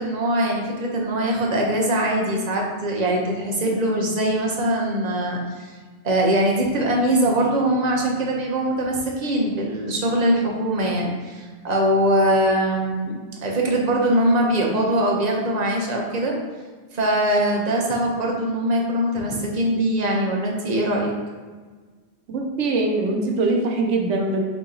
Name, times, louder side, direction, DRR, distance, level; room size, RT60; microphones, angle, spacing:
voice 1, 0.0-5.7 6.0-16.3 16.9-21.1, right 1 dB, 40° right, -1 dB, 0.8 m, -22 dB
voice 2, 22.3-24.4, right 2 dB, 90° right, 2 dB, 1.0 m, -22 dB
4.8 x 2.8 x 3.7 m, 1.4 s
omnidirectional pair, 1.2 m